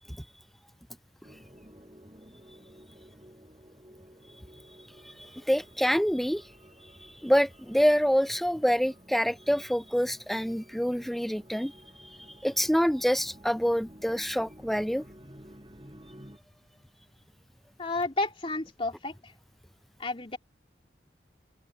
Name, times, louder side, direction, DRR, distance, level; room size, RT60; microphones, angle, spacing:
sound 1, 1.2-16.4, equal, 25° right, 7.4 m, -53 dB
voice 1, 5.0-6.4 7.0-11.7 12.4-15.0, equal, ahead, 0.4 m, -26 dB
voice 2, 17.8-19.3 20.0-20.4, left 2 dB, 30° left, 3.1 m, -31 dB
open air
head